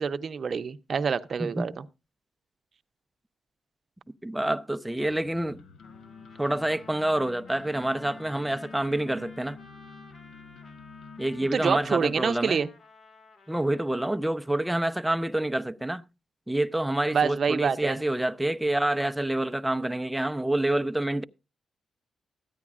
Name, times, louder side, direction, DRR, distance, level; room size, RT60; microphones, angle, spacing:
voice 1, 0.0-1.8 11.5-12.7 17.1-18.0, right 6 dB, 50° right, 0.6 m, -26 dB
voice 2, 1.4-1.7 4.2-5.6 6.4-9.6 11.2-12.6 13.5-16.0 16.5-21.2, right 1 dB, 5° right, 0.5 m, -27 dB
sound 1, 5.1-12.3, left 5 dB, 80° left, 0.8 m, -48 dB
Trumpet, 5.8-14.2, left 3 dB, 45° left, 2.0 m, -54 dB
14.0 x 9.5 x 2.4 m
cardioid pair, 90°, 0 cm